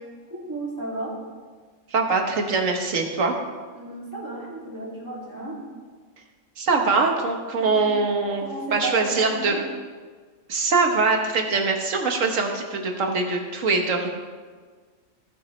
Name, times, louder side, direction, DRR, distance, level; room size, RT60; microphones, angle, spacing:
voice 1, 0.3-1.2 3.7-5.6 7.6-7.9 8.4-9.6, right 2 dB, 15° right, -5 dB, 2.6 m, -33 dB
voice 2, 1.9-3.4 6.6-8.4 8.7-9.6 10.5-14.1, right 4 dB, 90° right, 3 dB, 1.6 m, -23 dB
15.5 x 9.3 x 3.2 m, 1.5 s
omnidirectional pair, 1.3 m